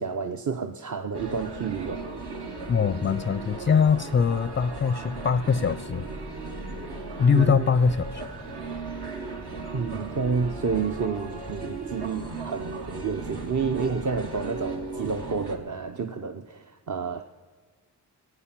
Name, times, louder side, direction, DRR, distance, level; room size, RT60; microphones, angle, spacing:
voice 1, 0.0-2.0 7.3-7.7 9.7-17.2, right 5 dB, 45° right, 6 dB, 0.7 m, -30 dB
sound 1, 1.1-15.6, right 3 dB, 70° right, 1.6 m, -36 dB
voice 2, 2.7-6.1 7.2-8.2, left 6 dB, 30° left, 15 dB, 0.4 m, -22 dB
14.5 x 8.8 x 5.9 m, 1.4 s
cardioid pair, 45°, 41 cm